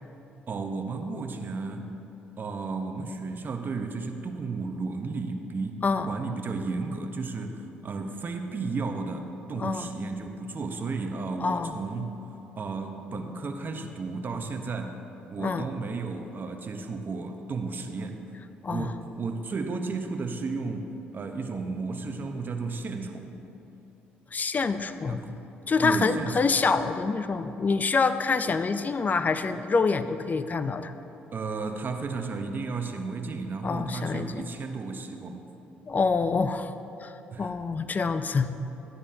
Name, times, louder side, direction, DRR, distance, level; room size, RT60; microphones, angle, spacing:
voice 1, 0.5-1.9 2.4-12.2 12.6-15.0 15.3-18.2 18.7-23.3 25.0-25.3 25.8-26.3 31.3-35.5 37.3-37.5, right 4 dB, 45° right, 5 dB, 0.9 m, -33 dB
voice 2, 9.6-9.9 11.4-11.7 15.4-15.7 18.6-18.9 24.3-25.2 25.7-30.9 33.6-34.5 35.9-36.7 37.0-37.1 37.4-38.5, left 4 dB, 35° left, 11 dB, 0.5 m, -26 dB
14.0 x 9.7 x 2.8 m, 3.0 s
hypercardioid pair, 60°, 5 cm